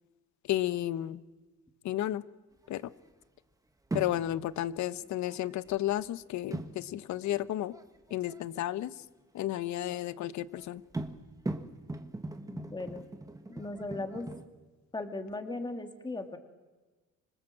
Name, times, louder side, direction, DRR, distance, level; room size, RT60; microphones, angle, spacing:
voice 1, 0.5-1.2 1.8-2.2 2.7-2.8 3.9-7.7 8.1-8.9 9.3-10.8, left 13 dB, 65° left, 16 dB, 1.0 m, -32 dB
sound 1, 3.0-3.1 3.9-4.6 5.0-6.0 6.5-6.9 7.2-7.3 7.6-8.4 9.8-10.3 10.5-14.4, right 2 dB, 10° right, 1.5 m, -40 dB
voice 2, 12.5-13.0 13.5-14.3 14.9-16.4, left 2 dB, 15° left, 7 dB, 2.3 m, -38 dB
26.5 x 25.0 x 7.7 m, 1.2 s
cardioid pair, 135°, 31 cm